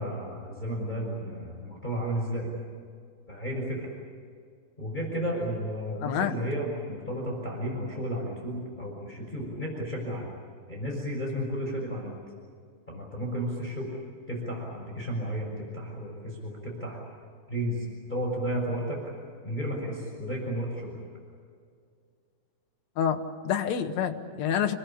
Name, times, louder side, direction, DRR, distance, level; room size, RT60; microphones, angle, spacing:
voice 1, 0.0-2.5 3.3-3.9 4.8-10.3 10.7-12.2 12.9-14.0 14.3-17.0 17.5-19.0 19.4-20.9, equal, 10° left, -2 dB, 5.7 m, -33 dB
voice 2, 6.0-6.3 23.0-24.7, left 8 dB, 55° left, 5 dB, 2.1 m, -28 dB
29.0 x 20.5 x 8.7 m, 2.2 s
omnidirectional pair, 5.0 m